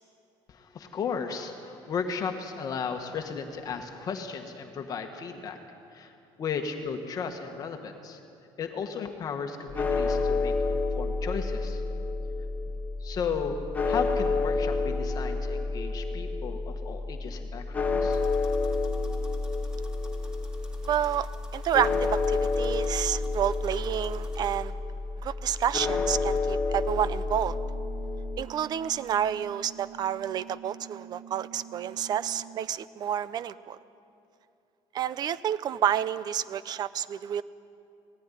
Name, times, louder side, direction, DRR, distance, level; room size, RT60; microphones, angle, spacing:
voice 1, 0.5-5.6 5.9-6.1 6.4-8.2 8.6-11.8 13.0-18.2, left 6 dB, 40° left, 5 dB, 1.5 m, -35 dB
sound 1, 9.7-28.4, left 3 dB, 15° left, 1.3 m, -29 dB
sound 2, 18.1-24.6, equal, 10° right, 2.0 m, -54 dB
voice 2, 20.8-24.7 25.2-27.6 28.4-33.8 34.9-37.4, right 10 dB, 40° right, 16 dB, 0.6 m, -29 dB
sound 3, 27.5-32.7, right 8 dB, 75° right, 1.5 m, -47 dB
18.5 x 15.0 x 9.9 m, 2.6 s
cardioid pair, 150°, 10 cm